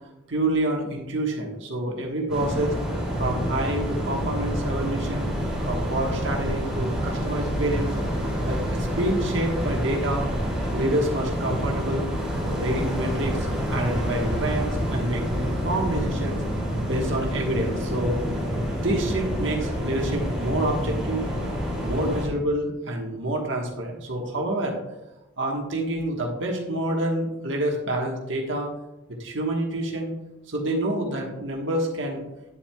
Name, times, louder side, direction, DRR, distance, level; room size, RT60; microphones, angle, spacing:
voice 1, 0.3-2.7 3.2-5.3 5.7-7.9 8.4-10.3 10.7-12.1 12.5-16.4 16.8-18.2 18.7-21.3 21.7-24.8 25.4-28.7 29.1-30.1 30.5-32.2, right 1 dB, 80° right, 0 dB, 1.4 m, -27 dB
sound 1, 2.3-22.3, equal, 5° right, 2.7 m, -27 dB
9.8 x 7.4 x 2.3 m, 0.96 s
head